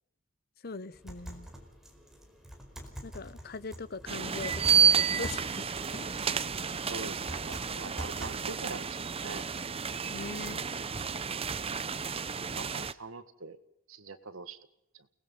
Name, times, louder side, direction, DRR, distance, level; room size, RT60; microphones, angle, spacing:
voice 1, 0.6-1.5 3.0-6.1 10.1-10.6, left 3 dB, 50° left, 15 dB, 1.0 m, -41 dB
sound 1, 0.9-8.3, equal, ahead, 4.5 m, -46 dB
sound 2, 4.1-12.9, right 7 dB, 30° right, 0.7 m, -30 dB
voice 2, 6.8-9.4 12.5-13.6 13.9-14.6 14.9-15.0, right 3 dB, 85° right, 11 dB, 1.7 m, -43 dB
30.0 x 19.5 x 5.4 m, 0.77 s
head